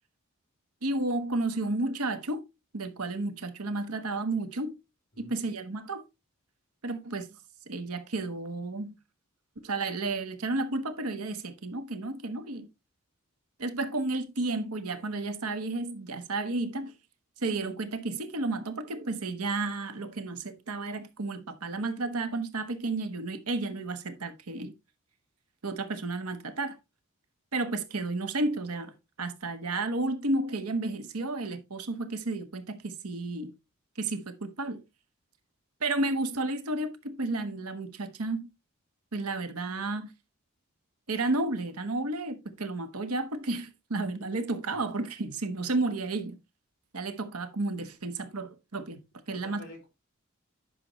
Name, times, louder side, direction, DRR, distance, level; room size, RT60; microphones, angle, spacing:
voice 1, 0.8-2.4 2.7-4.7 5.2-6.0 6.8-7.3 7.7-8.9 9.6-12.7 13.6-16.9 17.4-24.7 25.6-26.8 27.5-33.5 34.0-34.8 35.8-38.5 39.1-40.1 41.1-46.4 46.9-49.0 49.3-49.6, right 2 dB, 90° right, 1.3 m, -32 dB
voice 2, 5.1-5.6 44.7-44.9 49.3-49.9, left 1 dB, 50° left, 4.3 m, -49 dB
10.5 x 6.0 x 3.1 m
head